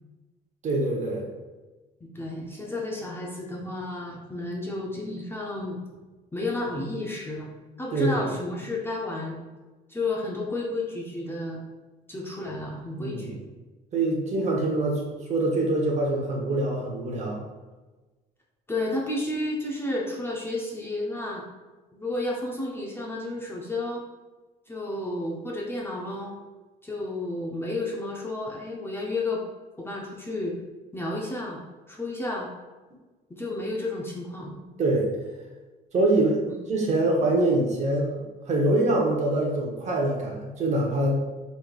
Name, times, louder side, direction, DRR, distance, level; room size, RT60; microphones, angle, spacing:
voice 1, 0.6-1.2 7.9-8.2 13.0-13.4 13.9-15.0 15.3-17.4 34.8-35.1 35.9-38.1 38.5-41.2, right 2 dB, 45° right, -1 dB, 0.9 m, -24 dB
voice 2, 2.0-5.8 6.3-9.4 9.9-11.6 12.1-13.4 18.7-21.4 21.9-24.0 24.7-26.3 26.8-29.4 29.8-30.6 30.9-31.6 31.9-32.5 33.3-34.6, left 2 dB, 15° left, -2 dB, 0.5 m, -32 dB
3.4 x 3.1 x 2.3 m, 1.2 s
cardioid pair, 110°, 17 cm